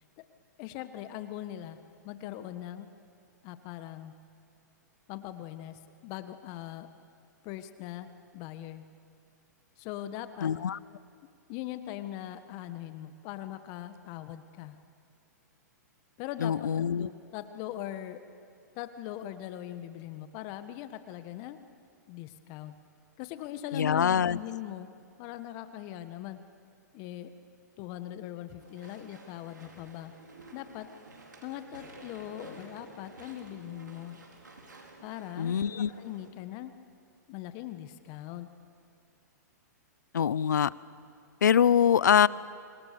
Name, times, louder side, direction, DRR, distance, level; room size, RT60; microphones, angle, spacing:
voice 1, 0.6-1.8 2.0-2.9 3.4-4.1 5.1-6.9 7.4-8.1 8.3-8.8 9.8-10.5 11.5-14.8 16.2-16.7 17.0-18.2 18.7-21.6 22.1-22.7 23.2-24.9 25.2-26.4 26.9-27.3 27.8-30.1 30.5-30.9 31.4-34.2 35.0-35.6 36.0-36.7 37.3-38.5, left 13 dB, 40° left, 10 dB, 1.4 m, -40 dB
voice 2, 10.4-10.8 16.4-17.1 23.7-24.4 35.4-35.9 40.1-40.7 41.4-42.3, left 8 dB, 75° left, 21 dB, 0.7 m, -24 dB
Walk footsteps / Chatter / Squeak, 28.6-36.3, right 2 dB, 85° right, 4.7 m, -51 dB
29.5 x 25.5 x 6.8 m, 2.4 s
hypercardioid pair, 120°, 10 cm